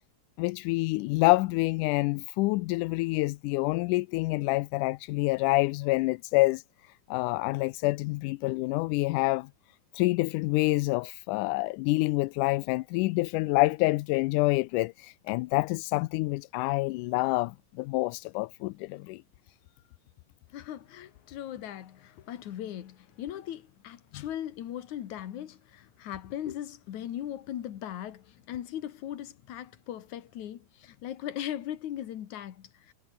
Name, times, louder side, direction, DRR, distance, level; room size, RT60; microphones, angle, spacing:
voice 1, 0.4-6.6 7.1-9.5 9.9-19.2 24.1-24.2, left 22 dB, 80° left, 1.9 m, -27 dB
voice 2, 20.5-32.9, left 11 dB, 65° left, 2.8 m, -39 dB
omnidirectional pair, 3.9 m